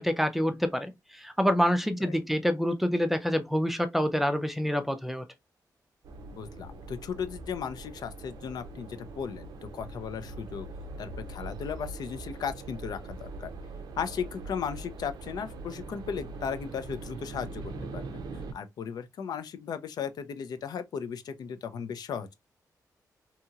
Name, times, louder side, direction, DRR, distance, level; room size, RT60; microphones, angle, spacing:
voice 1, 0.0-5.3, equal, 5° right, 0.4 m, -27 dB
sound 1, 6.0-18.5, right 2 dB, 85° right, 0.5 m, -42 dB
voice 2, 6.3-9.5 9.7-10.7 11.0-13.5 14.0-18.2 18.5-22.3, left 7 dB, 75° left, 0.4 m, -36 dB
2.8 x 2.8 x 2.3 m
wide cardioid pair, 140°, 7 cm